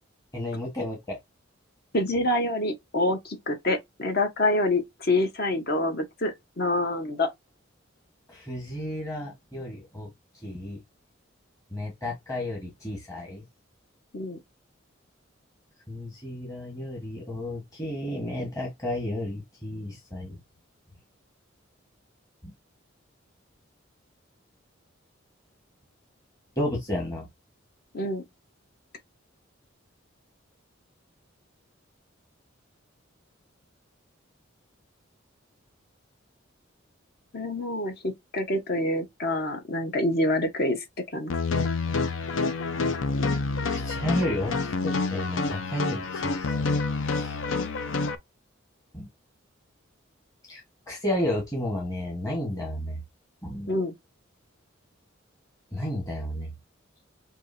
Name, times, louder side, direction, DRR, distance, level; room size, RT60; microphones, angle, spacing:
voice 1, 0.3-1.2 8.3-10.1 10.4-10.8 11.7-13.4 15.9-20.4 22.4-22.5 26.6-27.3 43.6-46.7 47.0-47.4 48.9-49.1 50.5-50.6 50.9-53.0 53.4-53.7 55.7-56.5, left 1 dB, 20° left, 1.3 m, -32 dB
voice 2, 1.9-7.3 14.1-14.4 27.9-28.2 37.3-40.8 41.1-41.3 53.7-53.9, left 1 dB, 50° left, 1.1 m, -26 dB
sound 1, 41.3-48.1, left 3 dB, 80° left, 0.6 m, -28 dB
6.0 x 2.9 x 2.6 m
head